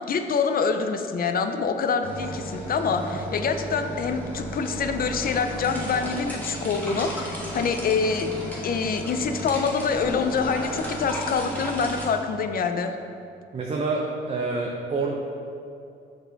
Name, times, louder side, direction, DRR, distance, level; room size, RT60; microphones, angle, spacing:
voice 1, 0.0-8.3 8.6-12.9, left 5 dB, 50° left, 8 dB, 0.5 m, -26 dB
sound 1, 2.0-12.1, right 1 dB, 10° left, 1.5 m, -34 dB
voice 2, 13.5-15.1, right 3 dB, 30° right, -1 dB, 0.6 m, -27 dB
6.2 x 4.8 x 3.9 m, 2.6 s
cardioid pair, 90°, 20 cm